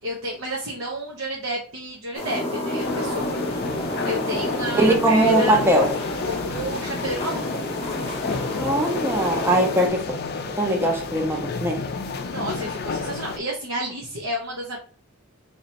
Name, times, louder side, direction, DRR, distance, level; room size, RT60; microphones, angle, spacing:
voice 1, 0.0-3.4 4.0-5.7 6.3-7.6 12.2-14.8, right 1 dB, 65° right, 0.8 m, -31 dB
sound 1, 2.1-9.9, left 1 dB, 25° left, 0.8 m, -30 dB
sound 2, 2.8-13.4, left 5 dB, 50° left, 0.4 m, -31 dB
voice 2, 4.7-5.9 8.6-10.0 10.6-11.8, right 1 dB, 10° right, 0.7 m, -20 dB
2.9 x 2.7 x 4.2 m
head